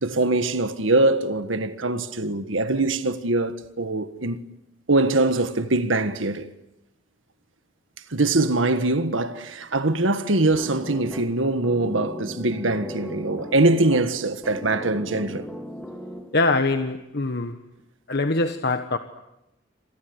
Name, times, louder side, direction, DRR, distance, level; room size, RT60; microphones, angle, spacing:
voice 1, 0.0-4.4 4.9-6.5 8.1-15.5, right 2 dB, 85° right, 1.6 m, -23 dB
sound 1, 10.6-16.6, equal, 5° left, 2.7 m, -37 dB
voice 2, 16.3-17.6 18.1-19.0, left 3 dB, 55° left, 1.3 m, -23 dB
28.5 x 25.0 x 8.0 m
head